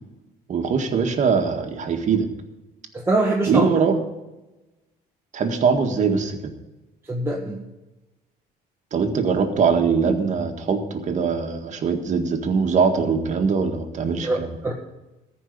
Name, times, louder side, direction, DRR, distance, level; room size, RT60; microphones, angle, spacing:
voice 1, 0.5-2.3 3.5-4.0 5.3-6.5 8.9-14.6, right 5 dB, 45° right, 5 dB, 1.7 m, -22 dB
voice 2, 2.9-3.7 7.1-7.6 14.2-14.7, right 2 dB, 15° right, -2 dB, 1.6 m, -23 dB
14.0 x 5.5 x 9.5 m, 1.0 s
cardioid pair, 110°, 17 cm